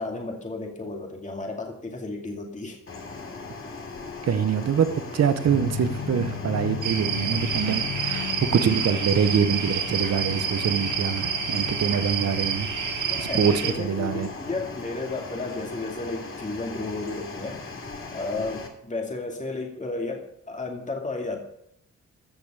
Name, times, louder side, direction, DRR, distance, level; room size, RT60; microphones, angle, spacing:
voice 1, 0.0-2.8 13.1-17.7 18.1-21.4, left 3 dB, 25° left, 1 dB, 2.4 m, -33 dB
sound 1, 2.9-18.7, left 3 dB, 45° left, 2.7 m, -39 dB
voice 2, 4.2-14.3, right 7 dB, 55° right, 11 dB, 1.0 m, -25 dB
sound 2, 5.4-15.1, left 6 dB, 80° left, 5.3 m, -36 dB
sound 3, 6.8-13.7, right 7 dB, 80° right, 2.0 m, -29 dB
15.0 x 6.8 x 6.8 m, 0.75 s
cardioid pair, 85°, 30 cm